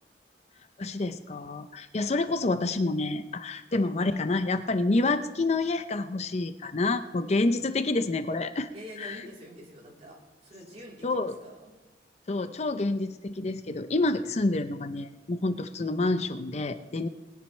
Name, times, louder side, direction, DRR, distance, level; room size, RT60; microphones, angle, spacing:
voice 1, 0.8-8.7 9.0-9.2 11.0-11.3 12.3-17.1, left 2 dB, 40° left, 10 dB, 0.5 m, -28 dB
voice 2, 7.2-7.9 8.7-11.7, equal, 35° right, -3 dB, 3.5 m, -47 dB
20.5 x 10.5 x 3.2 m, 1.2 s
head